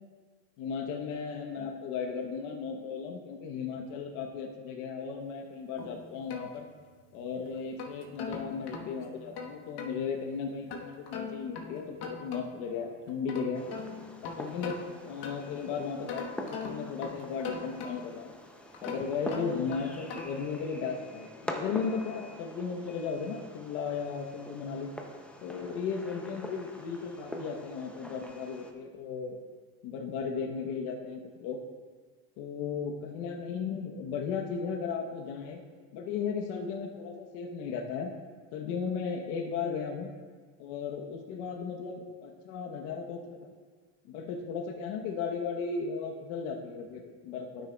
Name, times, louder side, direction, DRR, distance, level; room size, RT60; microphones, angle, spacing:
voice 1, 0.6-6.7 7.1-13.6 14.2-18.3 18.8-24.9 25.4-29.4 29.8-31.6 32.4-35.6 35.9-38.1 38.5-40.1 40.6-43.5 44.0-47.7, left 5 dB, 80° left, 2 dB, 1.1 m, -35 dB
sound 1, 5.8-7.1 7.6-10.0 10.7-12.7 13.1-15.6 16.1-18.2 18.7-20.5, left 5 dB, 55° left, 1.3 m, -42 dB
Fireworks, 13.5-28.7, equal, 5° left, 0.4 m, -44 dB
12.0 x 6.4 x 2.3 m, 1.5 s
cardioid pair, 115°, 49 cm